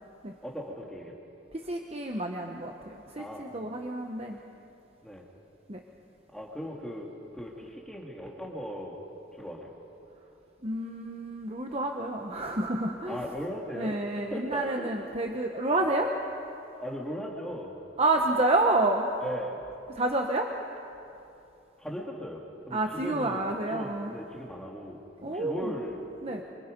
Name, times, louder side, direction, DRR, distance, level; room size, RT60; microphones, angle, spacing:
voice 1, 0.4-1.1 3.2-3.5 5.0-5.3 6.3-9.0 9.3-9.7 13.1-14.9 15.8-15.9 16.8-17.8 19.2-19.6 21.8-23.4 23.7-25.0 25.3-26.0, equal, 5° left, -2 dB, 2.4 m, -38 dB
voice 2, 1.5-4.4 5.7-5.8 10.6-13.2 13.7-16.1 18.0-19.1 19.9-20.5 22.7-24.1 25.2-25.7 26.2-26.4, right 2 dB, 30° right, 2 dB, 1.2 m, -29 dB
26.5 x 25.5 x 5.3 m, 2.8 s
head